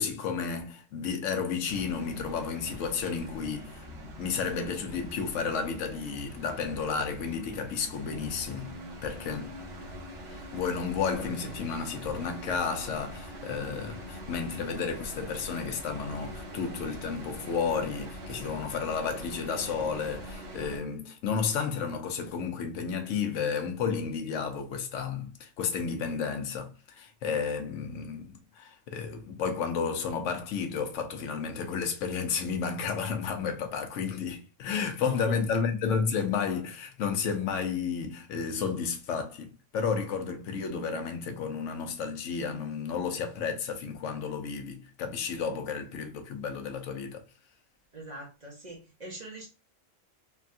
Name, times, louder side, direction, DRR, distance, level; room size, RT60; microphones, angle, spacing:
voice 1, 0.0-3.9 4.2-8.7 9.0-9.6 10.3-47.2, left 6 dB, 75° left, 1.0 m, -32 dB
sound 1, 1.7-20.8, equal, 60° right, 1.0 m, -43 dB
voice 2, 35.0-35.4 47.9-49.5, right 2 dB, 40° right, 0.7 m, -42 dB
3.3 x 2.3 x 2.5 m
omnidirectional pair, 1.3 m